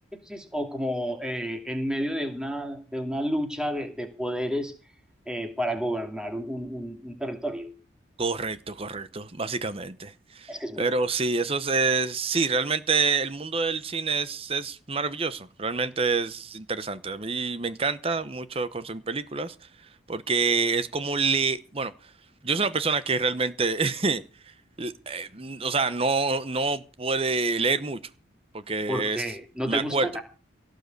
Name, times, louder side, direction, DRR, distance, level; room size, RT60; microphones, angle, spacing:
voice 1, 0.3-4.7 5.3-7.7 10.5-10.8 28.9-30.2, equal, 5° right, 2.6 m, -31 dB
voice 2, 8.2-19.5 20.1-21.9 22.4-24.2 24.8-28.0 28.5-29.2 29.7-30.1, right 4 dB, 30° right, 0.9 m, -27 dB
17.5 x 6.5 x 8.3 m
head